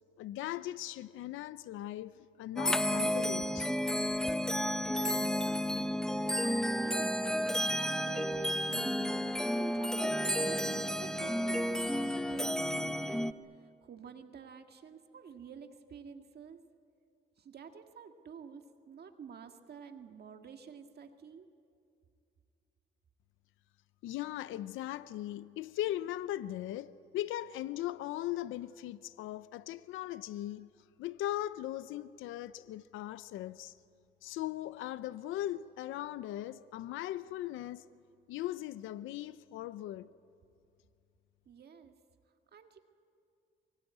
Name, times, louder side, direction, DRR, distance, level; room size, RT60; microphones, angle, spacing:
voice 1, 0.2-3.7 24.0-30.7 31.0-33.7 34.2-37.9 38.3-40.1, left 13 dB, 90° left, 0.6 m, -39 dB
sound 1, 2.6-13.3, equal, 5° left, 1.0 m, -32 dB
voice 2, 5.9-16.6 17.4-21.5 41.5-41.9 42.5-42.8, right 6 dB, 55° right, 1.8 m, -50 dB
24.5 x 22.5 x 9.5 m
cardioid pair, 90°, 20 cm